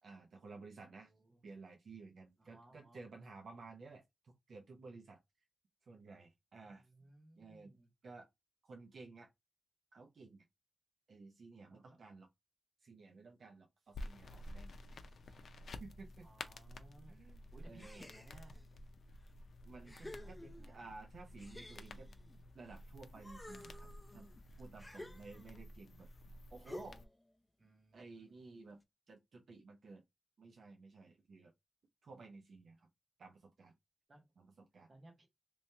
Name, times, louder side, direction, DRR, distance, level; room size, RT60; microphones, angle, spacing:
voice 1, 0.0-1.1 1.4-5.2 5.8-6.9 7.4-7.7 8.0-8.3 8.6-9.3 9.9-10.5 11.1-12.3 12.8-15.4 15.8-16.3 17.1-18.0 19.6-20.0 20.3-20.4 20.7-22.1 22.5-24.3 24.6-26.1 26.5-27.0 27.9-28.8 29.1-30.0 30.4-31.5 32.0-32.9 33.2-33.7 34.4-34.9, right 3 dB, 75° right, 0.7 m, -54 dB
voice 2, 0.9-1.4 2.4-3.1 6.6-7.9 11.7-12.0 16.2-17.2 17.5-18.7 19.8-20.8 27.6-28.6 34.1-34.2 34.9-35.3, right 1 dB, 40° right, 1.4 m, -62 dB
sound 1, 13.9-27.0, left 1 dB, 85° left, 0.5 m, -52 dB
sound 2, 17.8-18.6 19.3-19.4 19.9-20.9 21.4-22.8 23.1-25.7 26.7-27.2, left 1 dB, 10° left, 0.5 m, -53 dB
3.1 x 2.9 x 3.2 m
wide cardioid pair, 150°, 0 cm